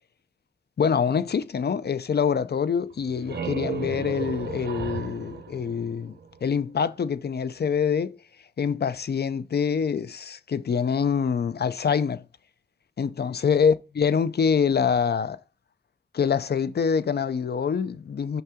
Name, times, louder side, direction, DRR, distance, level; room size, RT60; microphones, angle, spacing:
voice 1, 0.8-6.1 6.4-8.2 8.6-12.2 13.0-15.4 16.1-18.4, left 6 dB, 70° left, 0.5 m, -25 dB
sound 1, 2.9-6.6, right 6 dB, 85° right, 0.8 m, -34 dB
5.9 x 5.6 x 3.6 m
wide cardioid pair, 80°, 17 cm